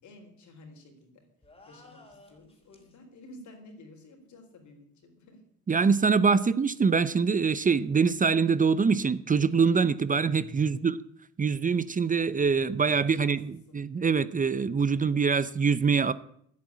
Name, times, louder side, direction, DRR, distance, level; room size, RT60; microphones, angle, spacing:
voice 1, 0.0-1.3 1.7-5.4 10.6-10.8 13.0-13.8, left 2 dB, 70° left, 3 dB, 4.1 m, -52 dB
sound 1, 1.4-3.0, left 2 dB, 20° left, 3.7 m, -55 dB
voice 2, 5.7-11.0 11.4-16.1, right 5 dB, 25° right, 16 dB, 0.6 m, -24 dB
10.5 x 8.6 x 9.8 m, 0.68 s
cardioid pair, 90°, 30 cm